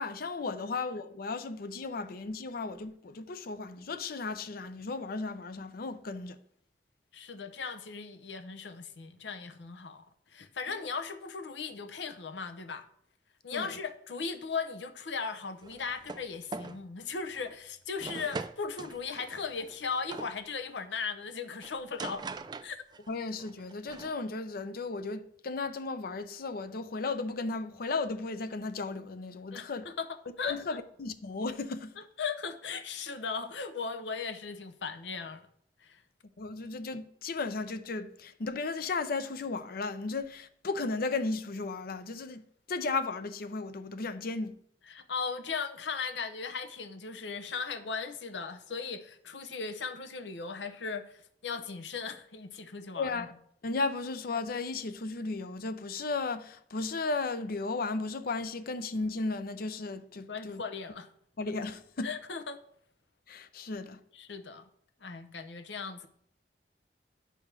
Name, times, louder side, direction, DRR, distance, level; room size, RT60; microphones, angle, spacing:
voice 1, 0.0-6.4 13.5-13.7 23.1-29.9 30.4-32.0 36.4-44.5 53.0-53.3 53.6-60.6 61.4-62.1 63.3-64.0, left 3 dB, 60° left, 0.6 m, -35 dB
voice 2, 7.1-12.9 13.4-22.3 22.6-22.8 29.5-30.1 30.4-30.8 32.0-35.5 35.8-36.0 44.9-53.3 60.3-61.1 62.0-62.6 64.1-64.7 65.0-66.1, left 5 dB, 85° left, 0.8 m, -38 dB
sound 1, 15.6-16.3 16.5-16.8 17.3-17.5 18.0-20.3 21.6-23.1 23.4-24.1, right 3 dB, 25° right, 0.3 m, -42 dB
9.9 x 3.5 x 5.9 m
head